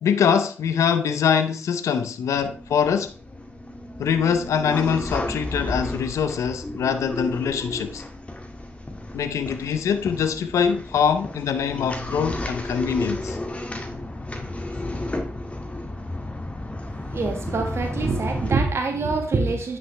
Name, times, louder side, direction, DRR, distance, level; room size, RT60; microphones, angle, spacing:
voice 1, 0.0-3.1 4.0-8.0 9.1-13.4, left 7 dB, 80° left, 0.7 m, -23 dB
sound 1, 2.3-18.5, left 1 dB, 25° left, 1.9 m, -33 dB
voice 2, 16.9-19.8, right 3 dB, 60° right, 1.6 m, -25 dB
9.4 x 6.0 x 3.3 m
supercardioid pair, 45°, 5 cm